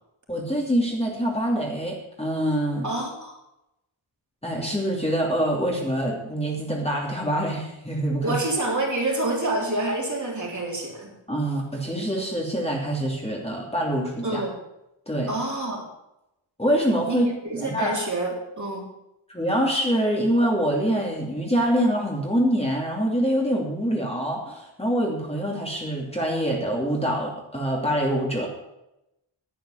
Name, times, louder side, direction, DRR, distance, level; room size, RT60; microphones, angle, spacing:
voice 1, 0.3-2.9 4.4-8.4 11.3-14.4 15.1-15.3 16.6-18.1 19.3-28.5, equal, 10° left, -2 dB, 2.8 m, -25 dB
voice 2, 2.8-3.4 8.2-11.1 14.2-14.5 15.3-15.9 17.1-17.2 17.5-18.8, right 2 dB, 35° right, -2 dB, 3.6 m, -27 dB
11.0 x 8.5 x 7.6 m, 0.89 s
wide cardioid pair, 110°, 50 cm